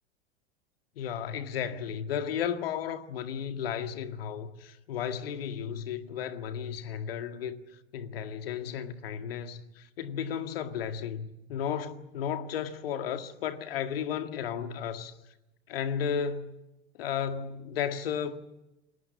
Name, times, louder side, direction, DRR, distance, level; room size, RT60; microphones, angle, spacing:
voice 1, 1.0-15.2 15.7-16.6 16.9-18.4, left 8 dB, 60° left, 2.0 m, -34 dB
30.0 x 21.5 x 7.2 m
figure-of-eight pair, 85°, 33 cm